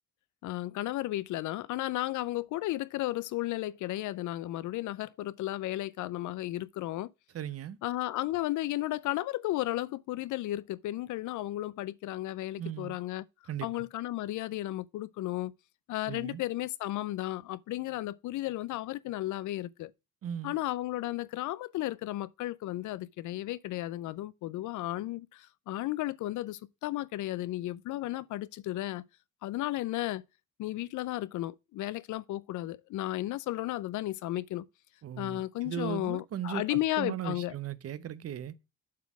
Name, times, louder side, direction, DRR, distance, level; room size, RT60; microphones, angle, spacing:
voice 1, 0.4-7.1 7.8-13.2 13.6-15.5 15.9-19.9 20.4-29.0 29.4-30.2 30.6-34.6 35.2-37.5, left 16 dB, 75° left, 0.5 m, -34 dB
voice 2, 7.3-7.8 12.6-13.0 13.5-13.8 16.1-16.4 20.2-20.5 35.0-38.6, right 10 dB, 50° right, 0.7 m, -37 dB
7.3 x 4.1 x 6.0 m
cardioid pair, 90°, 30 cm